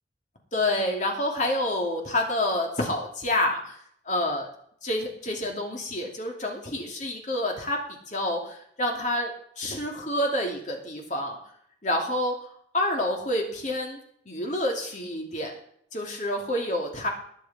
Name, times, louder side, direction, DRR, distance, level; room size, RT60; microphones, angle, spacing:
voice 1, 0.5-3.8 4.1-4.5 4.8-9.3 9.6-11.4 11.8-12.4 12.7-14.0 14.3-15.5 15.9-17.1, left 1 dB, 45° left, 1 dB, 2.8 m, -28 dB
20.0 x 8.2 x 4.3 m, 0.66 s
head